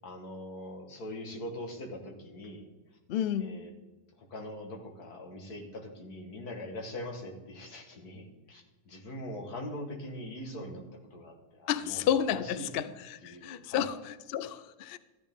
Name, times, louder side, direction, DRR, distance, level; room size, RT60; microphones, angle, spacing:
voice 1, 0.0-2.7 3.4-3.7 4.2-10.8 11.1-12.0 12.3-12.8 13.2-13.9, left 1 dB, 90° left, 2.2 m, -42 dB
voice 2, 3.1-3.6 11.7-15.0, left 9 dB, 65° left, 0.5 m, -31 dB
13.5 x 10.0 x 3.6 m
omnidirectional pair, 1.6 m